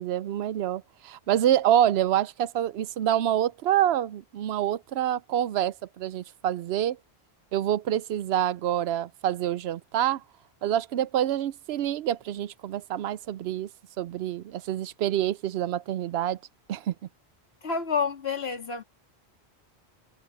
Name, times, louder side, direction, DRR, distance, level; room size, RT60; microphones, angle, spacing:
voice 1, 0.0-7.0 7.5-10.2 10.6-13.7 14.0-16.4 16.7-16.9, right 11 dB, 75° right, 0.8 m, -26 dB
voice 2, 17.6-18.8, left 5 dB, 70° left, 2.4 m, -29 dB
omnidirectional pair, 1.1 m